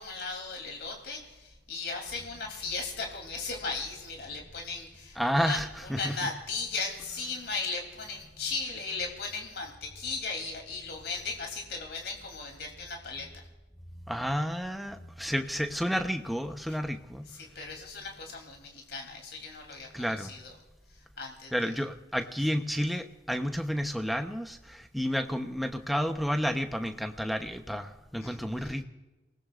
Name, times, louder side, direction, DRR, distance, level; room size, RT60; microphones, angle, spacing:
voice 1, 0.0-13.4 17.3-20.6 20.9-21.5 28.2-28.8, left 4 dB, 70° left, 2 dB, 3.4 m, -37 dB
voice 2, 5.2-6.1 14.1-17.3 19.9-20.3 21.5-28.8, equal, ahead, 5 dB, 0.9 m, -31 dB
29.0 x 19.5 x 2.5 m, 1.1 s
head